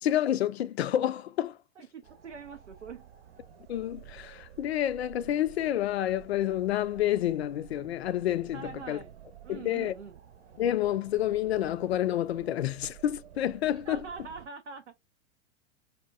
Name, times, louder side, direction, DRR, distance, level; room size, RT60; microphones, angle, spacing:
voice 1, 0.0-1.6 3.7-9.0 9.5-9.9 10.6-14.0, left 12 dB, 65° left, 0.5 m, -29 dB
voice 2, 1.8-3.1 8.5-9.1 9.4-10.1 13.7-14.9, right 6 dB, 90° right, 0.5 m, -43 dB
sound 1, 2.0-14.5, right 10 dB, 65° right, 0.8 m, -51 dB
4.2 x 2.2 x 2.4 m
figure-of-eight pair, 100°, 34 cm